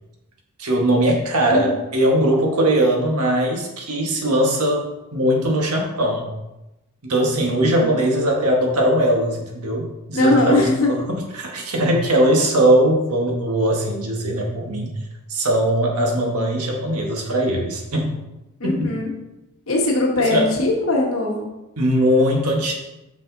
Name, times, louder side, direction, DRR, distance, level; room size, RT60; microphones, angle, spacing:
voice 1, 0.6-6.3 7.0-10.9 11.3-15.0 15.3-18.2 18.6-19.0 20.3-20.5 21.8-22.7, right 1 dB, 90° right, 0 dB, 1.4 m, -20 dB
voice 2, 10.1-10.9 18.6-19.1 19.7-21.5, left 2 dB, 65° left, -2 dB, 1.6 m, -20 dB
5.8 x 5.3 x 3.9 m, 0.98 s
head